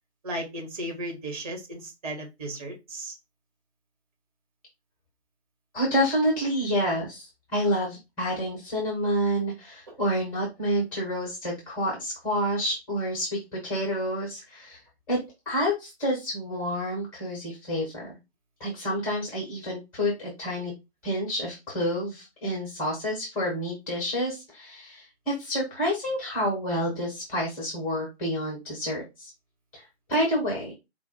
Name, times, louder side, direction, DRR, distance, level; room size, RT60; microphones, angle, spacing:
voice 1, 0.2-3.1 9.9-10.0, right 1 dB, 35° right, 1 dB, 1.4 m, -35 dB
voice 2, 5.7-14.8 15.1-15.2 15.5-18.2 18.6-20.7 21.0-29.3 29.7-29.8 30.1-30.8, equal, 5° left, -3 dB, 0.5 m, -28 dB
4.5 x 2.1 x 4.2 m, 0.23 s
figure-of-eight pair, 130°, 33 cm